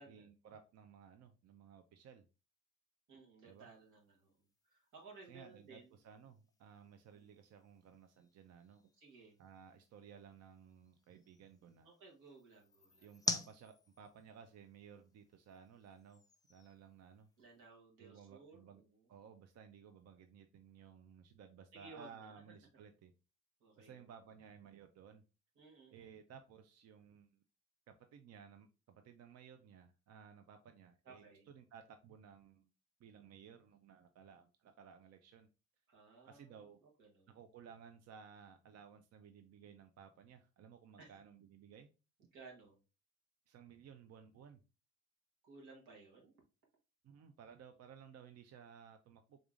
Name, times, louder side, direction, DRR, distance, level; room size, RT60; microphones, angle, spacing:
voice 1, 0.1-2.2 3.4-3.7 5.3-8.9 9.4-11.9 13.0-16.2 16.5-17.3 18.0-18.8 19.1-23.1 23.8-25.2 25.9-27.4 27.9-32.7 33.0-35.5 36.2-36.8 37.3-41.9 43.5-44.6 47.0-49.4, right 7 dB, 55° right, 7 dB, 0.5 m, -58 dB
voice 2, 3.1-6.0 7.1-7.3 9.0-9.3 11.8-13.1 17.4-19.1 21.7-22.3 23.6-24.1 25.6-26.1 31.0-31.5 35.9-37.4 41.0-41.2 42.2-42.8 45.4-46.3, right 3 dB, 90° right, 0 dB, 1.4 m, -58 dB
sound 1, 3.5-17.7, left 3 dB, 10° left, 0.4 m, -49 dB
3.7 x 3.5 x 2.4 m, 0.31 s
cardioid pair, 90°, 30 cm